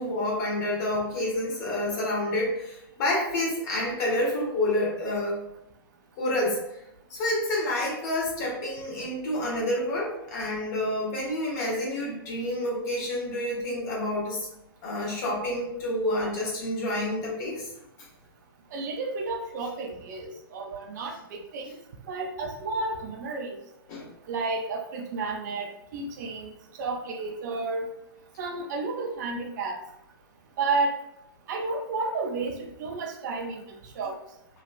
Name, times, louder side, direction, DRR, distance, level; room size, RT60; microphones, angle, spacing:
voice 1, 0.0-5.4 6.2-6.8 7.1-14.5 14.8-17.7 23.9-24.1, left 1 dB, 45° left, -3 dB, 1.2 m, -28 dB
voice 2, 18.7-21.8 22.1-23.6 24.3-26.5 26.8-27.9 28.4-29.8 30.6-31.0 31.5-34.2, right 3 dB, 45° right, 3 dB, 0.4 m, -31 dB
3.0 x 2.2 x 2.4 m, 0.83 s
figure-of-eight pair, 115°, 13 cm